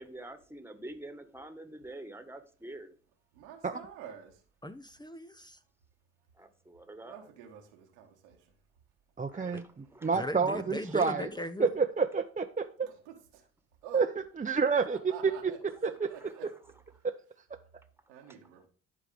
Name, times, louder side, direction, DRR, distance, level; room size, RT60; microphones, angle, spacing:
voice 1, 0.0-3.0 6.3-7.3 9.3-10.2 10.9-11.1 15.7-16.6 18.2-18.7, right 1 dB, 5° right, 1.6 m, -48 dB
voice 2, 3.3-4.4 7.0-8.5 12.8-13.4 13.8-14.0 14.9-15.7 16.0-16.4 18.1-18.7, right 8 dB, 85° right, 1.5 m, -48 dB
voice 3, 4.6-5.6 9.5-9.6 10.1-11.7, left 1 dB, 15° left, 0.8 m, -38 dB
voice 4, 9.2-11.3 11.6-12.9 13.9-14.1 14.4-15.0 15.4-15.5 15.8-16.1 17.0-17.1, right 5 dB, 25° right, 0.8 m, -29 dB
11.5 x 4.8 x 5.1 m
hypercardioid pair, 45°, 33 cm